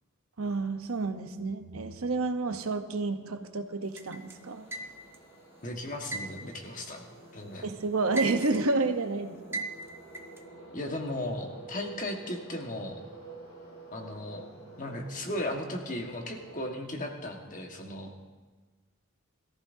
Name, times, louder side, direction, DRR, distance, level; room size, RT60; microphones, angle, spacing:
voice 1, 0.4-4.7 7.6-9.6, right 3 dB, 85° right, 7 dB, 0.9 m, -30 dB
sound 1, 3.1-16.6, right 2 dB, 55° left, 4.3 m, -50 dB
sound 2, 4.0-5.3 6.1-7.5 7.8-8.8 9.5-10.4, right 3 dB, 10° right, 0.7 m, -37 dB
voice 2, 5.6-7.7 10.7-13.0 13.9-14.5 14.8-18.1, left 1 dB, 40° left, 2 dB, 1.5 m, -36 dB
21.5 x 14.0 x 2.7 m, 1.3 s
head